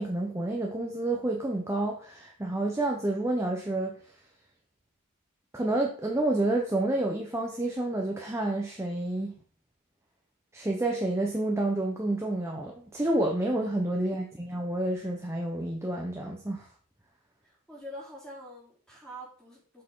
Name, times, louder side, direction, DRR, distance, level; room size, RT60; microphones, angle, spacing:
voice 1, 0.0-4.0 5.5-9.3 10.5-16.7, right 2 dB, 10° right, 0 dB, 1.0 m, -29 dB
voice 2, 14.0-14.4 17.4-19.8, equal, 5° left, -5 dB, 3.6 m, -46 dB
7.3 x 6.3 x 3.8 m, 0.42 s
head